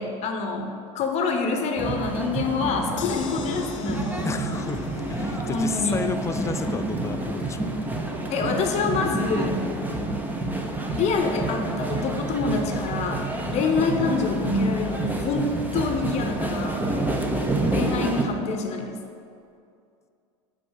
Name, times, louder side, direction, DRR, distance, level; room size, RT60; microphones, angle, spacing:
voice 1, 0.0-4.0 5.5-6.0 8.3-9.7 10.9-16.8 17.7-19.0, left 4 dB, 45° left, 4 dB, 0.9 m, -26 dB
sound 1, 1.8-18.2, right 2 dB, 10° right, 0.8 m, -28 dB
sound 2, 3.0-15.2 15.6-15.7 16.0-16.1, left 4 dB, 80° left, 0.7 m, -44 dB
voice 2, 4.2-7.7 9.7-9.8 13.4-13.6 16.9-17.2, left 5 dB, 20° left, 9 dB, 0.4 m, -32 dB
6.1 x 4.5 x 6.4 m, 2.4 s
hypercardioid pair, 100°, 16 cm